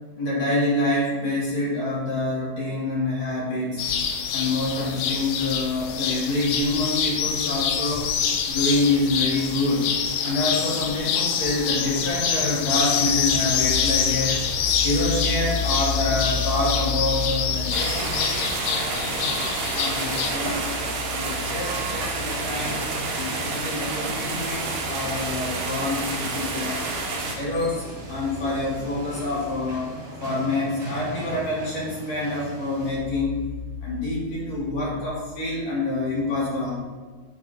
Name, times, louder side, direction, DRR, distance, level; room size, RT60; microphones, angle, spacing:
voice 1, 0.2-3.9 4.3-8.1 8.5-9.9 10.2-20.7 21.1-22.8 23.1-26.8 27.3-29.9 30.2-33.4 33.8-36.8, left 2 dB, 45° left, -7 dB, 2.8 m, -26 dB
sound 1, 3.8-20.3, left 7 dB, 90° left, 2.8 m, -26 dB
sound 2, 13.2-33.0, right 1 dB, 40° right, 1.4 m, -39 dB
sound 3, 17.7-27.3, right 3 dB, 65° right, 2.6 m, -29 dB
10.0 x 7.0 x 2.7 m, 1.3 s
omnidirectional pair, 4.9 m